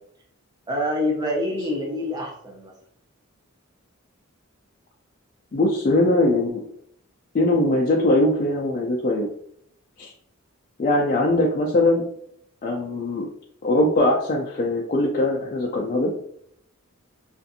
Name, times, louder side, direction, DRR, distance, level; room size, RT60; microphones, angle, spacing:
voice 1, 0.7-2.7, left 1 dB, 20° right, -1 dB, 0.5 m, -26 dB
voice 2, 5.5-6.6 7.3-9.3 10.0-10.1 10.8-12.0 12.6-13.3 13.6-16.1, left 1 dB, 35° left, -3 dB, 0.3 m, -21 dB
2.5 x 2.4 x 2.6 m, 0.67 s
head